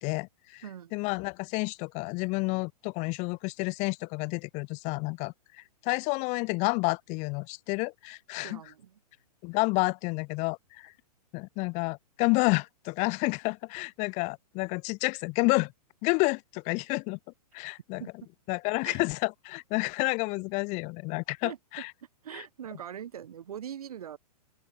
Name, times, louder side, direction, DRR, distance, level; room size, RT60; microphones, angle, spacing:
voice 1, 0.0-0.6 0.9-8.6 9.4-10.9 11.3-15.7 16.0-17.2 17.5-18.0 18.5-21.9 22.3-22.4, left 28 dB, 35° left, 2.7 m, -30 dB
voice 2, 0.6-1.0 8.4-9.0 18.0-18.1 18.8-19.0 21.4-21.6 22.2-24.2, right 9 dB, 65° right, 5.3 m, -42 dB
open air
figure-of-eight pair, 115°, 20 cm